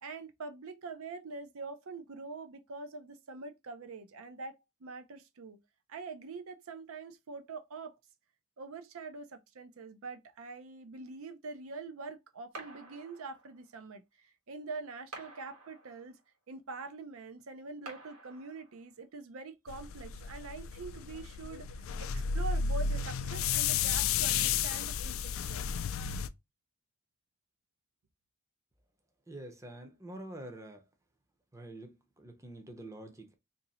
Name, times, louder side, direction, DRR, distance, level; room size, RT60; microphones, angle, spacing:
voice 1, 0.0-4.5 4.8-5.6 5.9-8.0 8.6-16.2 16.5-25.6, right 3 dB, 75° right, 0.5 m, -44 dB
sound 1, 12.5-13.7 15.1-16.3 17.9-18.9, right 2 dB, 90° right, 1.2 m, -50 dB
sound 2, 19.7-26.3, left 7 dB, 65° left, 0.3 m, -32 dB
voice 2, 29.3-30.8 31.5-33.3, right 1 dB, 15° right, 0.6 m, -46 dB
2.7 x 2.6 x 4.1 m
head